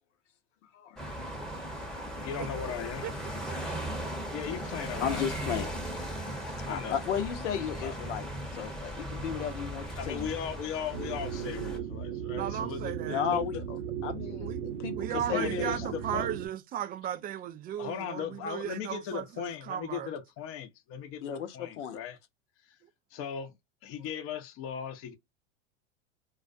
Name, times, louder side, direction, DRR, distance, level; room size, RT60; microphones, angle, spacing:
voice 1, 0.7-1.2 3.7-4.1 5.0-5.7 6.7-8.3 8.5-10.3 13.1-13.8 14.0-15.9 21.2-22.0, left 8 dB, 75° left, 0.7 m, -34 dB
sound 1, 1.0-11.8, right 1 dB, ahead, 0.8 m, -38 dB
voice 2, 2.1-3.2 4.1-5.7 6.4-7.0 7.8-7.9 10.0-13.4 15.1-16.3 17.8-22.2 23.1-23.5 23.8-25.2, left 8 dB, 40° left, 0.7 m, -38 dB
voice 3, 3.5-4.0 12.4-13.2 14.4-14.6 14.8-20.1, right 10 dB, 25° right, 0.4 m, -36 dB
sound 2, 10.9-16.5, right 9 dB, 75° right, 0.7 m, -36 dB
2.4 x 2.2 x 2.4 m
hypercardioid pair, 100°, 36 cm